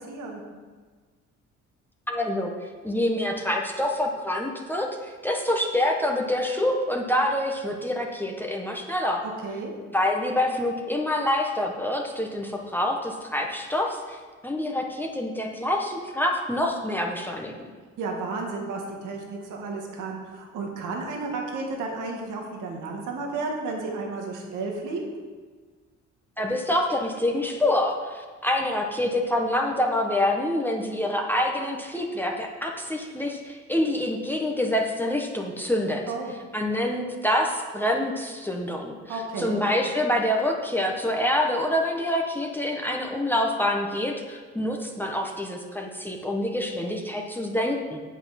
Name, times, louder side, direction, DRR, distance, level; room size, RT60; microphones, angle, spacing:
voice 1, 0.1-0.4 9.2-9.7 18.0-25.0 36.1-36.3 39.1-39.6, right 3 dB, 85° right, 1 dB, 1.9 m, -32 dB
voice 2, 2.1-2.5 2.8-9.2 9.9-17.5 26.4-36.0 36.5-48.0, left 1 dB, 5° left, 1 dB, 1.2 m, -26 dB
8.3 x 7.8 x 5.9 m, 1.4 s
cardioid pair, 90°, 30 cm